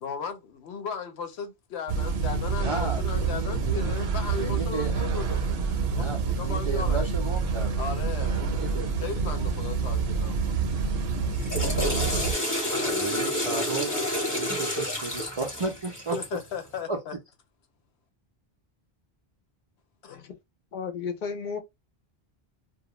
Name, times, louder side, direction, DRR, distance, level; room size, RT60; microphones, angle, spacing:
voice 1, 0.0-5.6 5.9-7.0 7.8-8.5 9.0-10.6 16.1-17.1 20.0-20.2, left 6 dB, 85° left, 0.9 m, -36 dB
sound 1, 1.9-12.3, right 5 dB, 75° right, 0.8 m, -27 dB
voice 2, 2.6-3.9 4.4-4.9 6.0-7.9 8.2-9.0 9.4-9.5 12.7-13.9 14.3-16.2 16.9-17.0, right 4 dB, 50° right, 0.4 m, -34 dB
Water / Toilet flush, 11.2-16.5, left 1 dB, 20° left, 0.8 m, -29 dB
voice 3, 20.7-21.6, left 6 dB, 60° left, 0.6 m, -33 dB
2.3 x 2.0 x 3.0 m
omnidirectional pair, 1.1 m